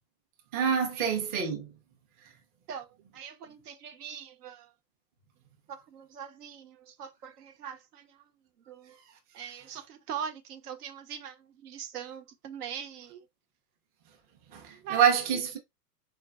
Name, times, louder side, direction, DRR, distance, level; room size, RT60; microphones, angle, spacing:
voice 1, 0.5-1.7 14.5-15.6, right 7 dB, 20° right, 0.5 m, -26 dB
voice 2, 2.7-4.7 5.7-8.2 8.7-9.0 9.3-13.2 14.7-15.0, right 8 dB, 65° right, 0.9 m, -42 dB
4.0 x 2.2 x 2.3 m
hypercardioid pair, 110°, 49 cm